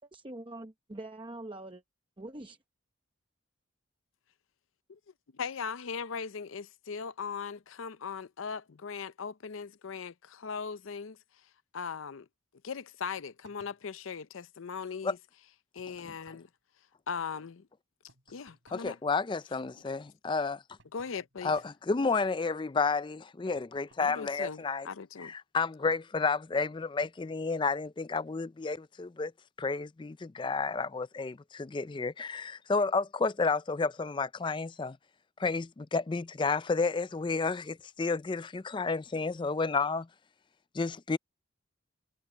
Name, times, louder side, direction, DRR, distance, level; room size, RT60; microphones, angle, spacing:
voice 1, 0.0-1.8 2.2-2.6, right 2 dB, 25° right, 0.8 m, -44 dB
voice 2, 5.4-11.2 11.7-12.3 12.6-15.2 15.7-16.5 17.1-17.7 18.3-19.0 20.9-21.5 24.0-25.3, left 6 dB, 75° left, 0.6 m, -39 dB
sound 1, 13.4-13.9 15.8-16.6 18.1-19.1 20.8-21.8 23.6-24.2, right 2 dB, 65° right, 6.0 m, -63 dB
voice 3, 18.7-20.6 21.4-24.9 25.2-29.3 29.6-35.0 35.4-40.1 40.7-41.2, left 4 dB, 25° left, 0.3 m, -31 dB
head